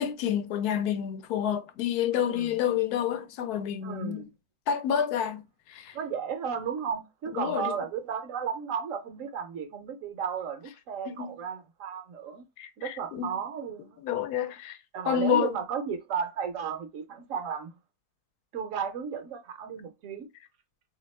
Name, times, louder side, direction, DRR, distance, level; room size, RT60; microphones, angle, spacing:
voice 1, 0.0-4.2 4.7-5.4 5.7-5.9 7.4-7.7 11.1-11.4 12.6-13.4 14.0-14.8 15.0-15.5, left 9 dB, 90° left, 1.1 m, -29 dB
voice 2, 2.1-2.6 3.8-4.3 5.9-12.5 12.8-14.0 14.9-17.7 18.5-20.3, right 7 dB, 65° right, 1.0 m, -34 dB
3.4 x 2.8 x 3.1 m
omnidirectional pair, 1.6 m